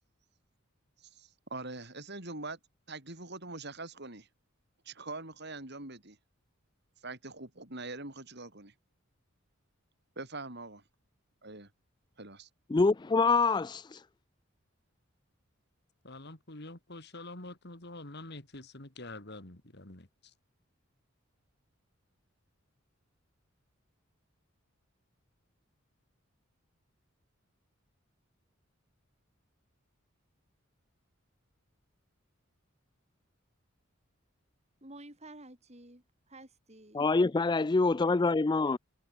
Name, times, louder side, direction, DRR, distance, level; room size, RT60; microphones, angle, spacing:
voice 1, 1.0-2.6 2.9-4.3 4.8-6.2 7.0-8.7 10.2-10.8 11.4-11.7 12.2-12.5, right 2 dB, 55° right, 6.3 m, -43 dB
voice 2, 12.7-14.0 36.9-38.8, left 3 dB, 20° left, 0.4 m, -26 dB
voice 3, 16.0-20.3, left 2 dB, 55° left, 3.2 m, -46 dB
voice 4, 34.8-37.0, right 1 dB, 30° right, 7.0 m, -51 dB
head